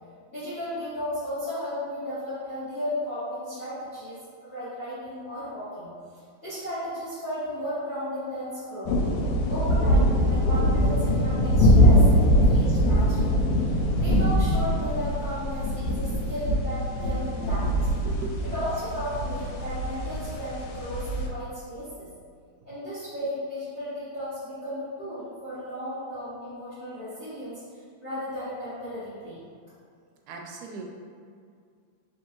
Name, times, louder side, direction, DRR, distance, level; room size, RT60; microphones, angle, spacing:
voice 1, 0.3-5.9 6.4-9.0 9.5-13.5 14.0-17.9 18.5-22.1 22.6-27.6 28.0-29.4, equal, 45° left, -14 dB, 0.8 m, -34 dB
sound 1, 8.9-21.3, equal, 80° left, 1.8 m, -23 dB
voice 2, 18.0-18.6 30.3-30.8, right 3 dB, 85° right, 1 dB, 1.9 m, -37 dB
4.5 x 2.8 x 2.9 m, 2.2 s
omnidirectional pair, 3.3 m